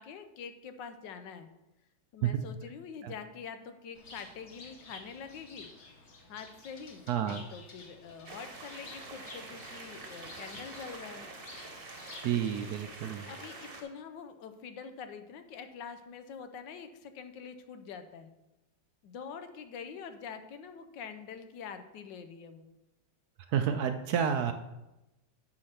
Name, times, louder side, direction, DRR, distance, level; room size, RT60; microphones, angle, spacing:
voice 1, 0.0-1.5 2.1-5.7 6.3-11.3 13.3-18.3 19.0-22.7, left 6 dB, 80° left, 8 dB, 1.4 m, -45 dB
Bird, 3.9-13.0, left 3 dB, 45° left, 1.3 m, -52 dB
voice 2, 7.1-7.4 12.2-13.3 23.5-24.5, right 8 dB, 70° right, 8 dB, 0.9 m, -30 dB
sound 1, 8.2-13.8, right 3 dB, 35° right, 1.2 m, -46 dB
8.6 x 4.9 x 5.8 m, 0.97 s
omnidirectional pair, 2.0 m